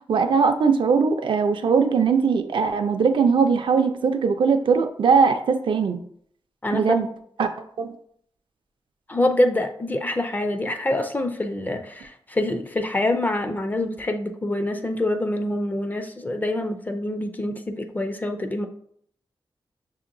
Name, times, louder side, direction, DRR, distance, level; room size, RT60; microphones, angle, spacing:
voice 1, 0.1-6.0 6.7-7.1 7.4-7.5 7.8-7.9, right 5 dB, 70° right, 7 dB, 0.4 m, -20 dB
voice 2, 6.6-7.1 9.1-18.7, left 1 dB, 20° left, 7 dB, 0.4 m, -25 dB
6.4 x 2.8 x 2.5 m, 0.66 s
wide cardioid pair, 155°, 9 cm